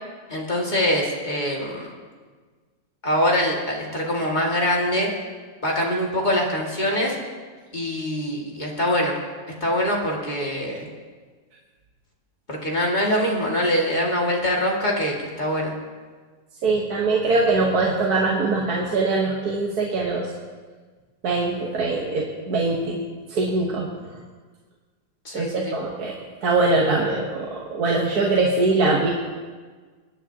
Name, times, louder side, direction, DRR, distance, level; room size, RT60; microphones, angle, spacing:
voice 1, 0.3-1.9 3.0-5.1 5.6-7.2 7.7-9.1 9.6-10.9 12.5-15.7 25.2-25.7, left 1 dB, 25° left, -2 dB, 2.0 m, -23 dB
voice 2, 16.6-20.3 21.2-23.0 23.3-23.9 25.3-26.1 26.4-29.1, right 3 dB, 60° right, -2 dB, 1.6 m, -22 dB
26.0 x 9.8 x 2.8 m, 1.5 s
omnidirectional pair, 2.0 m